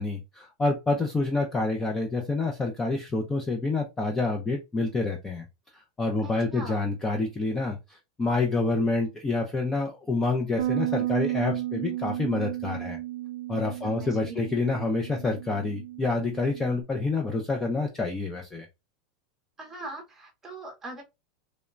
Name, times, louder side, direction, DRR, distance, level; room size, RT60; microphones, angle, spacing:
voice 1, 0.0-5.4 6.0-13.0 13.5-18.7, left 3 dB, 10° left, 0.3 m, -28 dB
voice 2, 6.2-6.8 13.8-14.5 19.6-21.0, right 2 dB, 10° right, 0.8 m, -41 dB
Bass guitar, 10.6-16.8, right 15 dB, 75° right, 0.3 m, -33 dB
2.9 x 2.1 x 2.3 m
supercardioid pair, 170°, 3 cm